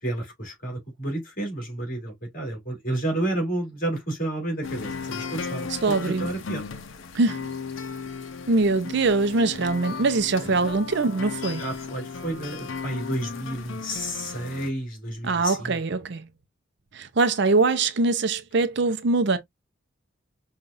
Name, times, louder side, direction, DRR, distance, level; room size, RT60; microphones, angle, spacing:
voice 1, 0.0-6.6 10.4-10.7 11.6-15.8, right 1 dB, 45° left, 2.6 m, -31 dB
sound 1, 4.6-14.7, left 5 dB, 80° left, 0.7 m, -35 dB
voice 2, 5.8-6.3 7.1-7.5 8.5-11.6 15.2-16.3 16.9-19.4, right 3 dB, 60° right, 0.6 m, -23 dB
5.5 x 2.4 x 2.5 m
head